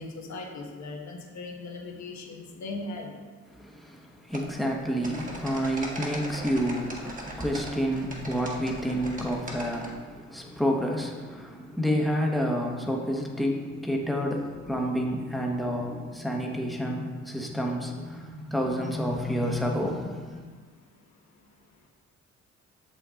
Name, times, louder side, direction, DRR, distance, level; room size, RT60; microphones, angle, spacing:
voice 1, 0.0-3.1, left 3 dB, 65° left, 1 dB, 1.4 m, -38 dB
voice 2, 3.5-20.4, equal, ahead, -1 dB, 1.1 m, -29 dB
sound 1, 4.3-9.9, right 1 dB, 25° right, 1.5 m, -39 dB
7.0 x 5.8 x 3.7 m, 1.5 s
cardioid pair, 90°, 30 cm